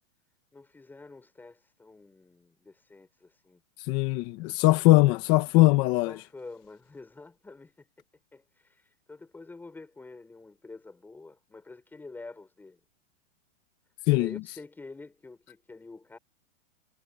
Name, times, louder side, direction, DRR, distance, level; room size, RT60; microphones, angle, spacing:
voice 1, 0.5-3.6 6.1-7.9 8.3-12.8 14.1-16.2, left 3 dB, 5° left, 5.3 m, -47 dB
voice 2, 3.9-6.1 14.1-14.3, left 19 dB, 25° left, 1.6 m, -21 dB
hypercardioid pair, 170°, 37 cm